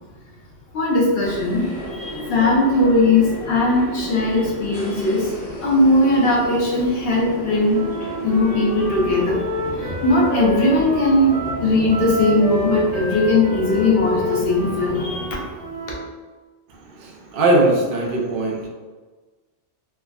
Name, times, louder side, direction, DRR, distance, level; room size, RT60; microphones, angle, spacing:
voice 1, 0.7-1.6 1.9-5.3 5.6-7.8 8.2-9.4 9.8-15.4, left 2 dB, 60° left, -3 dB, 0.8 m, -19 dB
sound 1, 1.2-15.3, left 1 dB, 75° left, 1.2 m, -33 dB
Wind instrument woodwind instrument, 7.7-16.1, right 1 dB, 90° right, 1.1 m, -29 dB
voice 2, 16.8-18.7, right 2 dB, 60° right, -2 dB, 0.6 m, -20 dB
3.4 x 2.1 x 2.3 m, 1.3 s
omnidirectional pair, 1.3 m